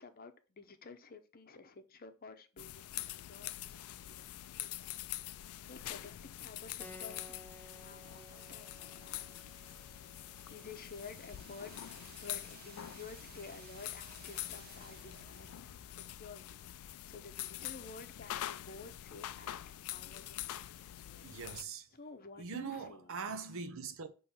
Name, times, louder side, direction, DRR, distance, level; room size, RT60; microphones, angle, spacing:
voice 1, 0.0-5.3 5.6-9.3 10.5-21.3 21.9-23.5, left 4 dB, 45° left, 0.7 m, -52 dB
sound 1, 2.6-21.6, left 13 dB, 80° left, 0.3 m, -45 dB
sound 2, 6.5-18.4, right 2 dB, 45° right, 1.3 m, -59 dB
Keyboard (musical), 6.8-11.9, equal, 5° left, 0.5 m, -57 dB
voice 2, 21.2-21.9 22.4-24.1, right 5 dB, 65° right, 0.7 m, -42 dB
6.0 x 3.1 x 5.6 m
head